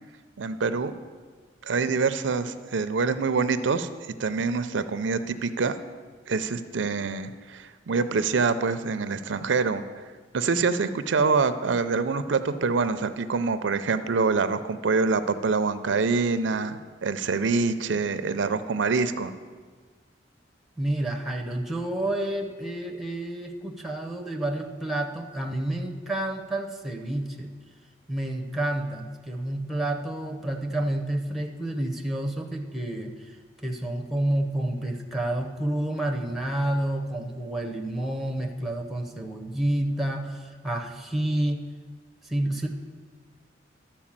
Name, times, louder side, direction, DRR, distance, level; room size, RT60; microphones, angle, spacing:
voice 1, 0.4-1.0 1.6-3.9 4.2-5.8 6.3-9.8 10.3-19.3, right 4 dB, 85° right, 11 dB, 0.5 m, -25 dB
voice 2, 20.8-27.5 28.1-33.3 33.6-41.6 42.2-42.7, right 1 dB, ahead, 3 dB, 0.8 m, -29 dB
12.0 x 4.5 x 7.3 m, 1.5 s
head